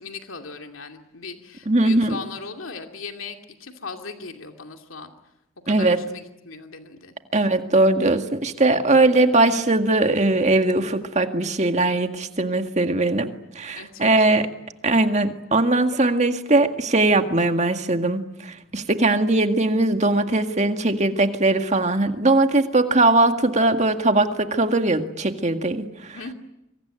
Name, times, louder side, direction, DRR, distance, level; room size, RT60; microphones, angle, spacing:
voice 1, 0.0-5.1 5.6-7.1 13.8-14.5 26.1-26.3, left 4 dB, 85° left, 4 dB, 2.5 m, -38 dB
voice 2, 1.7-2.2 5.7-6.0 7.3-14.5 14.8-26.2, right 2 dB, 35° right, 7 dB, 1.9 m, -20 dB
26.0 x 24.5 x 9.1 m, 0.89 s
head